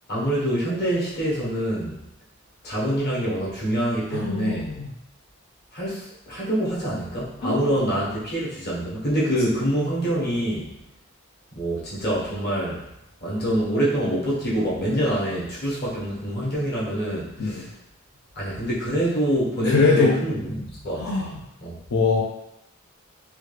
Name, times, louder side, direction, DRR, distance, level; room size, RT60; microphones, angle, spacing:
voice 1, 0.1-2.0 2.6-4.7 5.7-10.7 11.5-12.8 13.2-17.7 18.3-21.7, equal, 50° left, -6 dB, 1.2 m, -25 dB
voice 2, 4.1-4.9 7.4-7.6 17.4-17.7 19.7-20.2 21.0-21.4 21.9-22.2, left 4 dB, 85° left, -3 dB, 0.5 m, -22 dB
3.1 x 2.3 x 3.3 m, 0.82 s
head